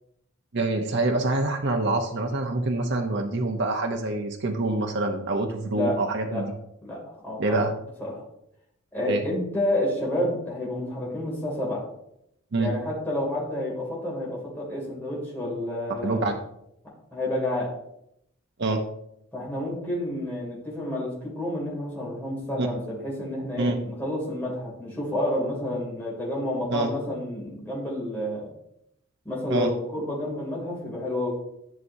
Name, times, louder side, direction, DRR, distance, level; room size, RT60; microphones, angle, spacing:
voice 1, 0.5-6.4 7.4-7.7 9.1-9.2 12.5-12.7 16.0-16.3 18.6-18.8 22.6-22.7 23.6-23.8 26.7-26.9 29.5-29.7, right 2 dB, 55° right, 3 dB, 0.7 m, -26 dB
voice 2, 6.8-7.7 8.0-8.2 8.9-11.8 12.6-16.3 17.1-17.7 19.3-28.5 29.2-31.3, left 1 dB, 10° left, -5 dB, 2.6 m, -30 dB
11.0 x 6.1 x 2.7 m, 0.78 s
head